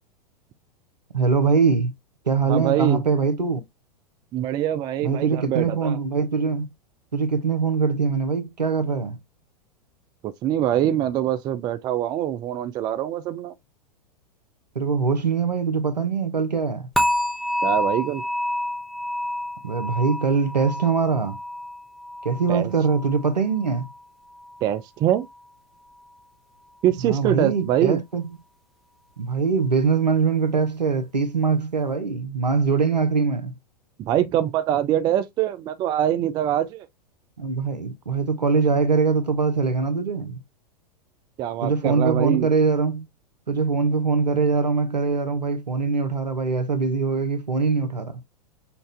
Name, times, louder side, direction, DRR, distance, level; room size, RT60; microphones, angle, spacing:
voice 1, 1.1-1.9 2.2-3.6 5.0-6.7 7.1-9.2 14.7-16.9 19.6-21.4 22.2-23.9 27.0-28.2 29.2-33.5 37.4-40.4 41.6-43.1 43.5-48.2, right 5 dB, 80° right, 1.1 m, -22 dB
voice 2, 2.5-3.0 4.3-6.0 10.2-13.5 17.6-18.2 22.5-22.7 24.6-25.3 26.8-28.0 34.0-36.9 41.4-42.5, right 11 dB, 20° right, 0.4 m, -24 dB
sound 1, 17.0-24.0 24.3-24.7 25.2-25.3, left 1 dB, ahead, 0.9 m, -29 dB
5.8 x 2.6 x 3.4 m
figure-of-eight pair, 95°, 21 cm